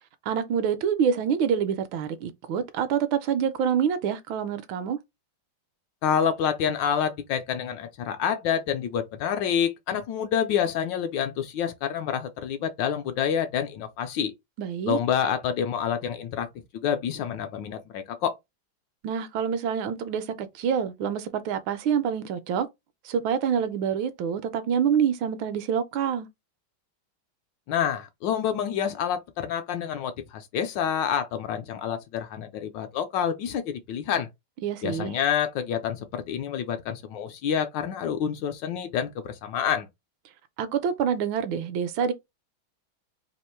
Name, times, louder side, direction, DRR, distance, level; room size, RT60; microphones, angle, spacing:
voice 1, 0.3-5.0 14.6-15.0 19.0-22.7 23.0-26.3 34.6-35.2 40.6-42.1, right 7 dB, 75° right, 1.3 m, -26 dB
voice 2, 6.0-14.3 14.9-16.5 16.8-18.3 27.7-34.3 34.8-39.9, left 8 dB, 75° left, 1.1 m, -28 dB
3.5 x 2.5 x 4.3 m
omnidirectional pair, 2.3 m